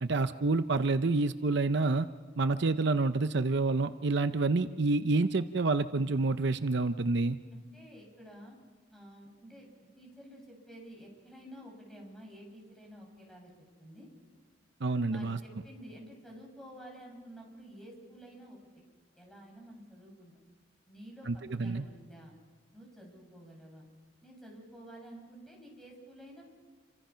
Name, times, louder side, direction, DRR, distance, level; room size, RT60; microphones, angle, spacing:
voice 1, 0.0-2.1 2.4-7.4 14.8-15.4 21.3-21.8, right 3 dB, 65° right, 10 dB, 0.7 m, -28 dB
voice 2, 7.5-8.6 8.9-9.7 10.0-13.5 13.8-14.1 15.1-18.8 19.2-20.4 20.9-22.3 22.7-23.8 24.2-26.5, equal, ahead, 0 dB, 7.2 m, -51 dB
29.0 x 25.5 x 5.7 m, 1.5 s
head